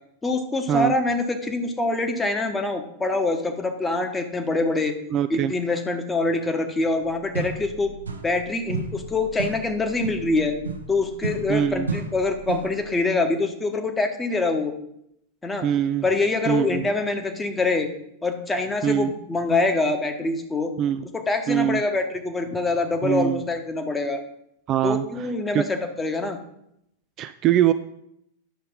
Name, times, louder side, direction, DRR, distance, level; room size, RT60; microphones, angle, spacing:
voice 1, 0.2-4.9 5.3-7.9 8.2-10.6 10.9-14.7 15.4-15.7 16.0-17.9 18.2-20.7 21.1-24.2 24.8-26.4, left 3 dB, 15° left, 6 dB, 1.2 m, -25 dB
voice 2, 5.1-5.5 11.5-11.9 15.6-16.0 16.5-16.8 18.8-19.1 20.8-21.0 21.5-21.8 23.0-23.4 24.7-25.3 25.5-25.6 27.2-27.7, right 10 dB, 35° right, 10 dB, 0.3 m, -22 dB
sound 1, 7.0-7.1 7.3-8.4 8.7-12.8, right 3 dB, 75° right, 0.8 m, -33 dB
10.5 x 6.6 x 3.7 m, 0.75 s
figure-of-eight pair, 90°, 0 cm